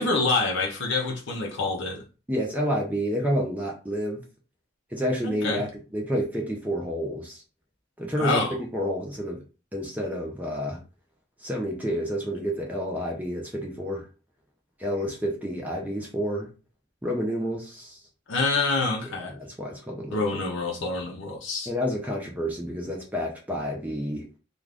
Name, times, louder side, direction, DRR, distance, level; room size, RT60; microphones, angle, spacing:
voice 1, 0.0-2.0 5.2-5.6 8.2-8.5 18.3-19.3 20.1-21.7, left 3 dB, 70° left, 0.6 m, -26 dB
voice 2, 2.3-4.2 4.9-7.4 8.0-9.4 9.7-10.8 11.4-14.1 14.8-16.5 17.0-18.0 19.2-20.2 21.7-24.3, equal, 10° right, 0.6 m, -29 dB
2.4 x 2.4 x 3.3 m
head